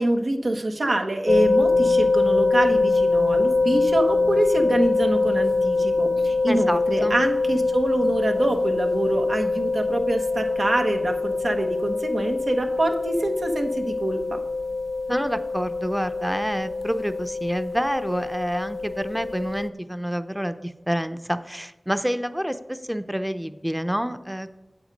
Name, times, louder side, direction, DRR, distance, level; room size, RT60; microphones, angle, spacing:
voice 1, 0.0-14.4, right 1 dB, 85° right, 5 dB, 1.1 m, -25 dB
sound 1, 1.3-19.7, left 3 dB, 75° left, 0.3 m, -24 dB
voice 2, 6.5-7.2 15.1-24.5, equal, 5° right, 11 dB, 0.6 m, -28 dB
8.0 x 7.9 x 5.2 m, 1.0 s
wide cardioid pair, 60°, 0 cm